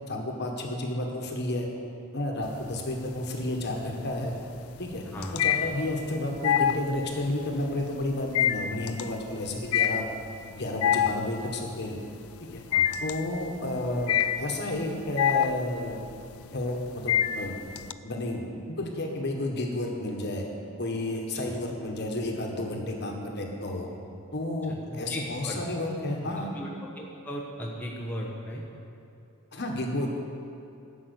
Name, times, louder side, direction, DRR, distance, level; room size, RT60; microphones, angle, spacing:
voice 1, 0.1-1.7 2.1-4.3 4.8-5.0 5.3-10.0 10.5-12.0 12.5-12.6 13.0-16.0 16.5-17.6 18.0-20.4 20.8-23.9 24.3-26.5 29.5-30.2, left 1 dB, 50° left, 1 dB, 1.4 m, -31 dB
sound 1, 2.4-3.1 3.4-17.9, left 9 dB, 70° left, 0.4 m, -27 dB
voice 2, 5.1-5.4 12.7-12.9 21.5-21.6 24.7-25.6 26.5-28.6, equal, 5° left, -4 dB, 1.0 m, -37 dB
12.0 x 6.0 x 8.2 m, 2.7 s
head